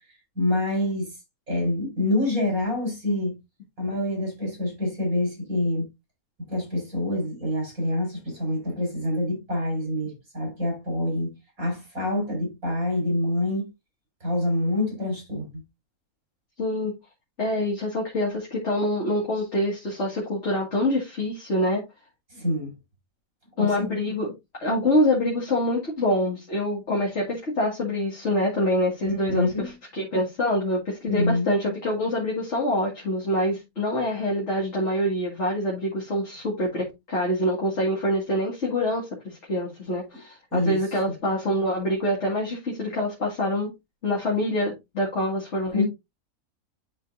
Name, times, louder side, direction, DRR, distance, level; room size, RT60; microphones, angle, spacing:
voice 1, 0.3-1.1 1.5-3.4 3.8-5.9 6.5-11.3 11.6-13.7 14.2-15.6 22.3-22.7 23.6-23.7 29.0-29.7 31.1-31.5 40.5-40.8 45.7-45.8, left 1 dB, 75° right, 4.9 m, -26 dB
voice 2, 16.6-16.9 17.4-21.8 23.6-24.3 24.6-43.7 44.0-45.8, left 1 dB, 55° left, 2.2 m, -25 dB
10.5 x 4.0 x 2.5 m
omnidirectional pair, 1.5 m